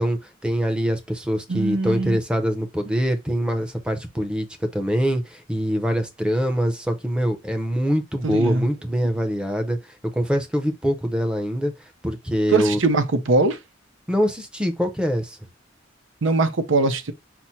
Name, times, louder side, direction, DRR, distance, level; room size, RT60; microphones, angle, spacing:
voice 1, 0.0-9.8 10.1-11.7 12.0-12.8 14.1-15.4, equal, 5° right, 0.7 m, -24 dB
voice 2, 1.5-2.2 8.2-8.7 12.5-13.6 16.2-17.1, right 3 dB, 85° right, 0.7 m, -21 dB
6.0 x 2.1 x 4.1 m
head